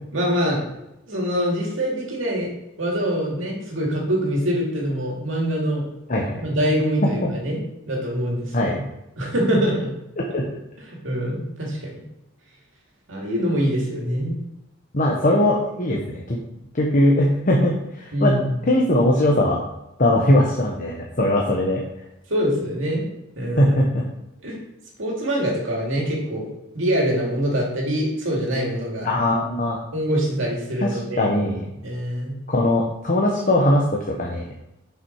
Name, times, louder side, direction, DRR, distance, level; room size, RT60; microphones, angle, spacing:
voice 1, 0.1-0.6 1.1-2.5 2.8-5.8 6.4-7.6 7.9-8.7 9.2-9.9 11.0-12.0 13.1-14.4 18.1-18.6 22.3-23.0 23.4-23.7 24.4-24.5 25.0-26.5 26.7-29.1 29.9-31.3 31.8-32.3, equal, 70° right, -2 dB, 2.5 m, -24 dB
voice 2, 6.1-6.4 7.0-7.3 8.5-8.8 10.2-10.4 14.9-16.4 16.7-18.4 18.6-19.6 20.0-21.8 23.6-24.0 29.0-29.7 30.8-31.6 32.5-34.5, left 1 dB, 40° left, -1 dB, 1.0 m, -20 dB
6.8 x 5.9 x 4.7 m, 0.89 s
head